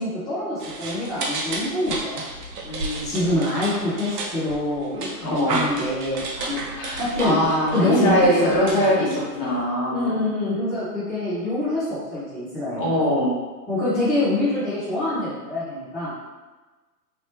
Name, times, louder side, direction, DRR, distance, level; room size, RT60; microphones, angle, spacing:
voice 1, 0.0-2.2 3.0-6.6 7.0-7.4 7.7-8.9 9.9-12.8 13.7-16.1, left 1 dB, 10° left, -15 dB, 0.5 m, -25 dB
sound 1, 0.6-9.6, right 3 dB, 70° right, 0.8 m, -32 dB
voice 2, 2.6-3.6 5.2-5.6 6.7-10.2 12.7-13.4, equal, 25° left, -4 dB, 0.8 m, -23 dB
3.4 x 2.9 x 2.8 m, 1.3 s
hypercardioid pair, 125°, 50 cm